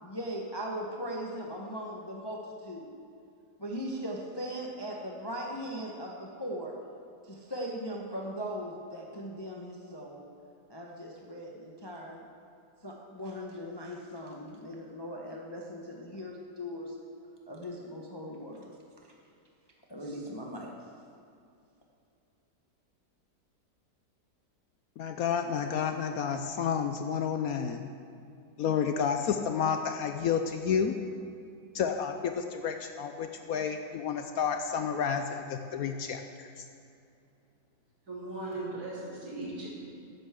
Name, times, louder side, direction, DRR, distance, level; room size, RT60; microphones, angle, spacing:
voice 1, 0.0-2.9 3.6-6.7 7.2-10.3 10.7-12.2 12.8-16.9 17.5-18.7 19.9-20.7, equal, 20° left, -1 dB, 0.9 m, -39 dB
voice 2, 25.0-27.8 28.6-30.9 31.7-36.5, left 7 dB, 70° left, 6 dB, 1.0 m, -30 dB
voice 3, 38.1-39.7, right 2 dB, 65° right, -8 dB, 4.2 m, -38 dB
14.0 x 11.5 x 3.7 m, 2.5 s
omnidirectional pair, 1.8 m